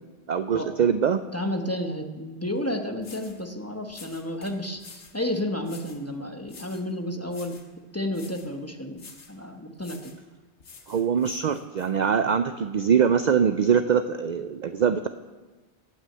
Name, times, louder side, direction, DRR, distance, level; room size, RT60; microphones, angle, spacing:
voice 1, 0.3-1.2 10.9-15.1, right 7 dB, 55° right, 10 dB, 0.5 m, -23 dB
voice 2, 1.3-7.6 7.9-9.0 9.3-10.1, left 1 dB, 15° left, 4 dB, 0.9 m, -31 dB
sound 1, 2.6-2.7 3.0-3.4 3.9-5.2 5.6-6.0 6.5-6.9 7.3-7.7 8.1-8.5 8.9-9.4 9.8-10.2 10.6-11.9, left 4 dB, 80° left, 1.5 m, -49 dB
18.0 x 6.2 x 7.7 m, 1.3 s
omnidirectional pair, 1.2 m